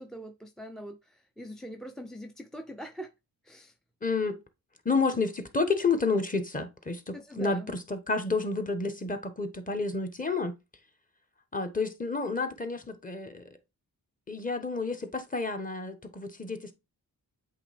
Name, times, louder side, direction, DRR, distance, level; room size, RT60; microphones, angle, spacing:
voice 1, 0.0-3.1 3.4-3.7 7.1-7.7, equal, ahead, 0.5 m, -43 dB
voice 2, 4.0-4.4 4.8-10.5 11.5-13.4 14.3-16.7, left 4 dB, 20° left, 1.1 m, -30 dB
8.0 x 3.4 x 3.4 m
wide cardioid pair, 85°, 39 cm